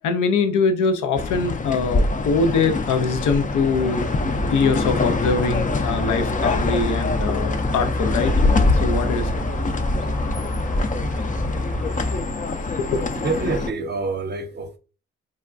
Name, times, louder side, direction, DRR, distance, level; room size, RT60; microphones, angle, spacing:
voice 1, 0.0-4.1 4.5-8.3 8.7-9.4 12.8-13.0, left 4 dB, 80° left, 0.5 m, -23 dB
sound 1, 1.1-13.7, left 3 dB, 25° left, 0.4 m, -24 dB
sound 2, 3.8-12.2, equal, ahead, 0.7 m, -28 dB
voice 2, 13.2-14.8, right 3 dB, 35° right, 0.7 m, -26 dB
3.3 x 2.2 x 2.4 m
supercardioid pair, 40°, 30 cm